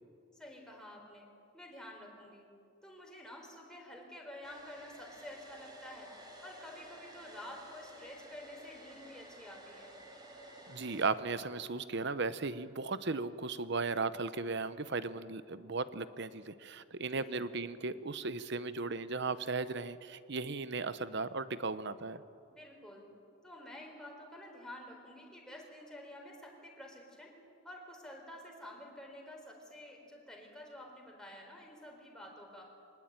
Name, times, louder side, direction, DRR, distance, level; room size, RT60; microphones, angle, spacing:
voice 1, 0.3-1.3 1.5-2.4 2.8-6.1 6.4-9.9 17.1-17.5 22.5-23.1 23.4-27.3 27.6-32.6, left 1 dB, 5° left, 0 dB, 4.4 m, -50 dB
Domestic sounds home sounds, 4.4-11.1, equal, 20° right, 4.0 m, -53 dB
voice 2, 10.7-22.2, right 4 dB, 55° right, 13 dB, 0.9 m, -36 dB
24.0 x 20.0 x 9.1 m, 2.6 s
head